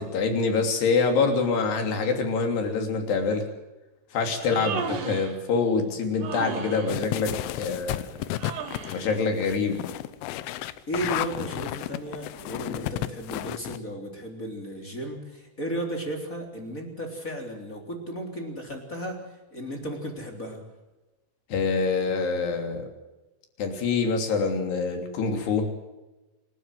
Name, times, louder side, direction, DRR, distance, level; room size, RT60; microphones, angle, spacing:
voice 1, 0.0-3.5 4.1-8.0 8.9-9.8 21.5-22.9 23.6-25.7, left 4 dB, 60° left, 4 dB, 4.9 m, -25 dB
Human voice, 4.3-5.4 6.2-6.9 8.4-9.1, right 6 dB, 55° right, 3.0 m, -34 dB
voice 2, 4.4-4.7 10.9-20.6, right 1 dB, 20° left, 2 dB, 3.2 m, -34 dB
sound 1, 6.9-13.8, left 14 dB, 80° left, 3.4 m, -33 dB
28.0 x 13.5 x 7.7 m, 1.1 s
omnidirectional pair, 5.7 m